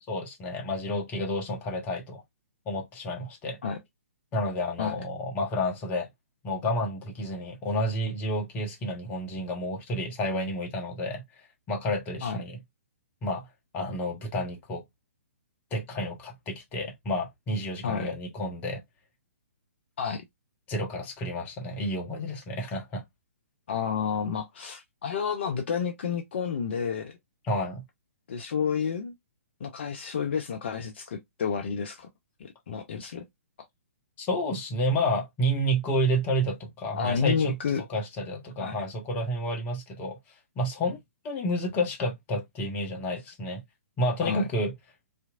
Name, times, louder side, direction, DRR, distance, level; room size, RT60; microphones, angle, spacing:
voice 1, 0.1-2.2 2.7-3.6 4.3-6.1 6.4-11.2 11.7-12.6 13.2-13.5 13.7-14.8 15.7-18.8 20.7-23.0 27.4-27.9 34.2-37.6 37.9-40.2 40.6-41.0 41.2-43.6 44.0-44.7, equal, 20° left, 0.8 m, -30 dB
voice 2, 23.7-27.2 28.3-29.1 29.6-32.1 32.4-33.3 36.9-37.8 38.6-38.8 44.2-44.5, left 7 dB, 50° left, 0.4 m, -30 dB
2.8 x 2.5 x 2.3 m
figure-of-eight pair, 125°, 8 cm